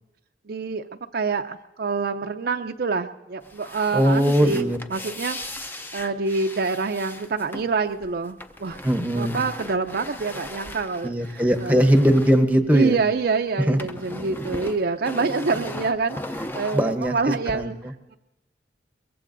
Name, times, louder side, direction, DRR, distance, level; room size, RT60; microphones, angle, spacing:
voice 1, 0.5-0.8 1.1-5.4 5.9-8.8 9.1-11.9 12.7-17.8, right 4 dB, 55° right, 6 dB, 0.5 m, -26 dB
sound 1, 3.4-13.2 13.5-17.5, left 1 dB, 10° left, 0.5 m, -38 dB
voice 2, 3.9-4.8 8.8-9.4 11.0-13.0 13.7-13.8 16.7-17.9, equal, 10° right, 7 dB, 0.8 m, -20 dB
23.0 x 22.5 x 2.6 m, 1.0 s
head